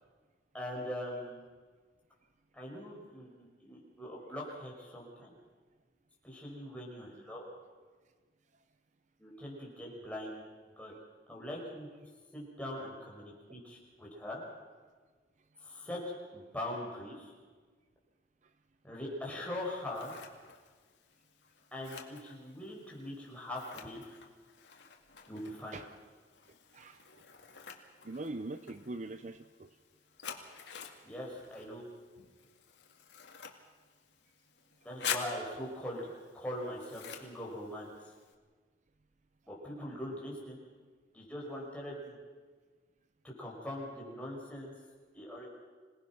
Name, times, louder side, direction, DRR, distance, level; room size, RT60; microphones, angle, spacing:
voice 1, 0.5-1.4 2.5-5.3 6.2-7.4 9.2-10.4 10.8-10.9 11.3-11.9 12.3-14.4 15.6-16.0 16.3-17.3 18.8-20.1 21.7-24.0 25.3-25.8 31.0-31.8 34.8-36.0 36.3-37.9 39.5-40.6 41.1-42.2 43.4-44.7 45.1-45.5, left 1 dB, 10° left, -3 dB, 5.7 m, -42 dB
Scissors, 19.6-38.3, left 7 dB, 85° left, 2.2 m, -47 dB
voice 2, 26.7-27.1 28.0-29.8, right 2 dB, 45° right, 10 dB, 0.7 m, -42 dB
26.5 x 18.5 x 6.0 m, 1.5 s
head